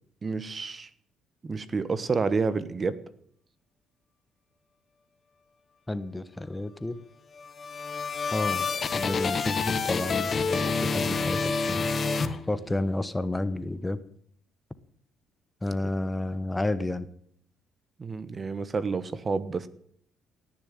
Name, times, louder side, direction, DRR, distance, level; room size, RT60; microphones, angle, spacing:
voice 1, 0.2-0.9 1.4-3.0 18.0-19.7, right 4 dB, 35° right, 15 dB, 1.2 m, -29 dB
voice 2, 5.9-7.0 8.3-8.6 8.9-12.0 12.5-14.0 15.6-17.1, left 2 dB, 15° left, 14 dB, 1.0 m, -31 dB
sound 1, 7.3-12.9, left 4 dB, 40° left, 1.4 m, -28 dB
18.0 x 7.0 x 9.2 m, 0.65 s
supercardioid pair, 75°, 0 cm